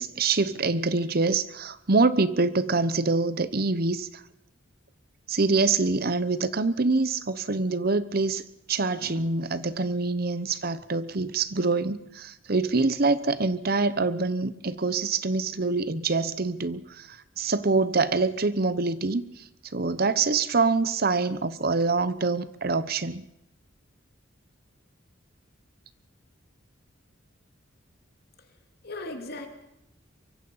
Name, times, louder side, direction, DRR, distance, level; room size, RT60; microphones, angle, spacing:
voice 1, 0.0-4.2 5.3-8.4 8.7-19.4 19.7-23.2, right 3 dB, 50° right, 0.9 m, -25 dB
voice 2, 28.8-29.5, left 2 dB, 50° left, 3.1 m, -38 dB
24.0 x 23.5 x 5.7 m
head